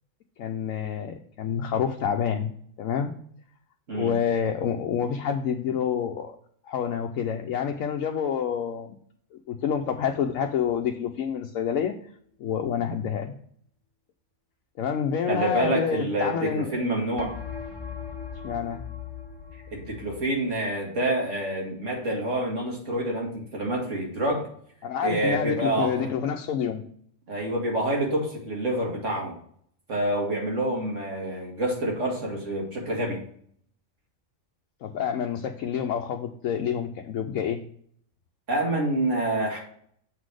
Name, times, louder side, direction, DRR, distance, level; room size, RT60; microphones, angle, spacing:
voice 1, 0.4-2.5 2.8-3.2 3.9-6.4 6.6-9.0 9.3-12.0 12.4-13.3 14.8-16.8 18.4-18.8 24.8-26.8 34.8-37.6, left 8 dB, 75° left, 3 dB, 1.0 m, -28 dB
sound 1, 9.8-10.7 17.2-20.2, left 6 dB, 20° left, 1.0 m, -39 dB
voice 2, 15.3-17.3 19.7-24.5 25.0-26.1 27.3-29.4 29.9-33.2 38.5-39.6, right 1 dB, 60° right, -1 dB, 2.3 m, -27 dB
7.4 x 4.1 x 4.7 m, 0.63 s
omnidirectional pair, 1.4 m